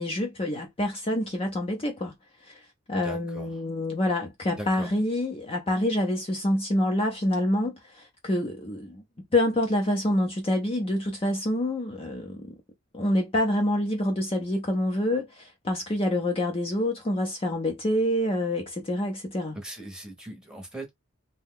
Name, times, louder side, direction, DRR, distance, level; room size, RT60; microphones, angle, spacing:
voice 1, 0.0-2.1 2.5-2.6 2.9-9.0 9.3-12.5 12.9-19.6, left 1 dB, 25° left, 0.6 m, -27 dB
voice 2, 3.0-3.6 4.6-4.9 19.5-20.9, right 1 dB, 5° right, 0.9 m, -39 dB
2.7 x 2.2 x 3.6 m
head